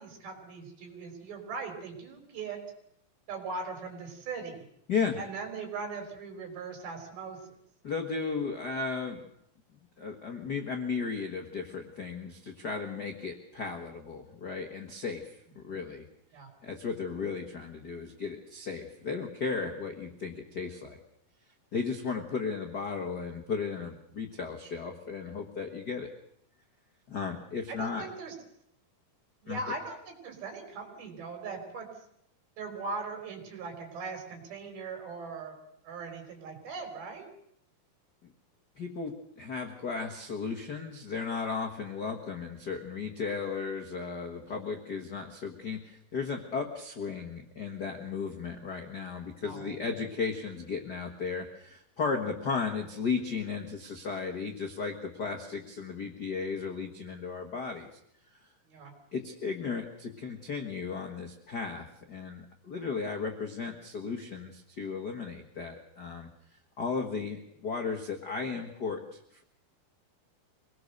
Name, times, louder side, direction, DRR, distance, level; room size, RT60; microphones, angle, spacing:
voice 1, 0.0-2.6 3.3-4.7 5.2-7.4 16.3-16.5 27.7-28.3 29.4-31.9 32.6-35.6 35.8-37.3 49.4-50.0 58.7-58.9, right 4 dB, 70° right, 4 dB, 5.4 m, -40 dB
voice 2, 7.8-9.2 10.0-16.0 16.6-21.0 21.7-26.1 27.1-28.1 29.5-29.6 38.8-57.9 59.1-66.3 66.8-69.4, left 5 dB, 80° left, 2 dB, 0.9 m, -35 dB
24.5 x 18.5 x 6.6 m, 0.72 s
omnidirectional pair, 4.4 m